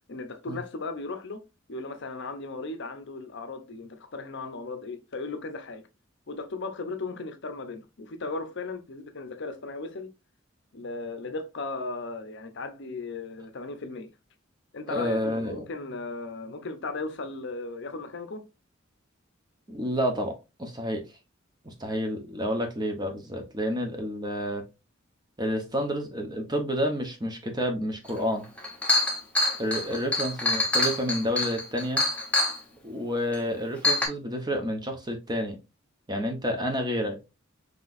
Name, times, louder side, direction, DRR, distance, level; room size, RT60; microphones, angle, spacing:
voice 1, 0.1-5.8 6.3-10.1 10.7-14.1 14.7-18.5, left 3 dB, 60° left, 0.7 m, -36 dB
voice 2, 14.9-15.7 19.7-20.3 20.6-21.0 21.6-24.6 25.4-28.4 29.6-32.0 32.8-35.6 36.1-37.2, equal, 20° right, 1.0 m, -29 dB
Chink clink, 28.2-28.3 28.6-32.6 33.3-33.4 33.8-34.1, left 2 dB, 5° left, 1.1 m, -25 dB
5.9 x 3.2 x 2.5 m
head